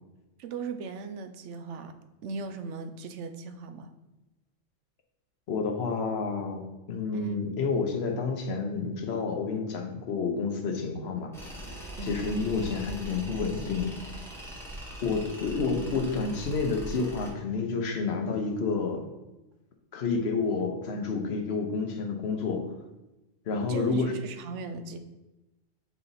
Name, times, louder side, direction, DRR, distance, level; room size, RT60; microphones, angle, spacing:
voice 1, 0.4-1.9 2.2-3.9 7.1-7.4 12.0-12.4 23.6-25.0, right 4 dB, 70° right, 8 dB, 0.9 m, -38 dB
voice 2, 5.5-11.5 12.0-14.0 15.0-19.1 19.9-22.7 23.5-24.2, left 4 dB, 55° left, 4 dB, 1.0 m, -29 dB
Tools, 11.3-17.3, equal, ahead, 1.2 m, -41 dB
5.8 x 4.2 x 4.0 m, 1.0 s
omnidirectional pair, 1.3 m